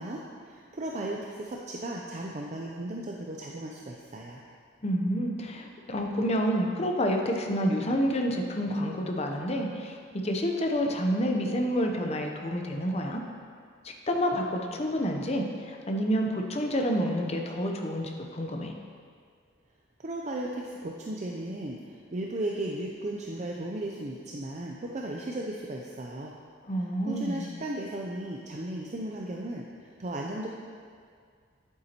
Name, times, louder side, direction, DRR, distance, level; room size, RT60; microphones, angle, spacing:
voice 1, 0.0-4.4 20.0-26.3 27.0-30.5, right 1 dB, 40° right, -1 dB, 0.5 m, -36 dB
voice 2, 4.8-13.2 13.8-18.8 26.7-27.5, equal, 35° left, 2 dB, 0.7 m, -29 dB
9.4 x 8.2 x 2.9 m, 2.1 s
head